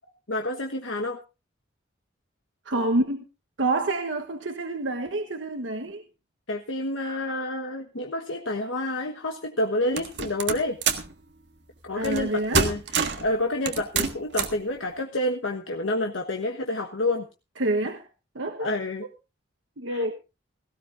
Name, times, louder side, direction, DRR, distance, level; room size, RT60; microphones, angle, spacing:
voice 1, 0.3-1.2 6.5-10.8 11.8-12.8 13.2-17.2 18.6-19.1 19.9-20.1, left 1 dB, 90° left, 1.3 m, -28 dB
voice 2, 2.6-3.3 3.6-6.0 11.9-12.7 17.6-18.1 18.3-18.7 19.8-20.1, right 2 dB, 80° right, 1.3 m, -27 dB
sound 1, 10.0-11.1 12.0-12.3 12.5-13.3 13.7-14.6, right 5 dB, 65° right, 1.6 m, -26 dB
17.5 x 16.0 x 2.6 m
head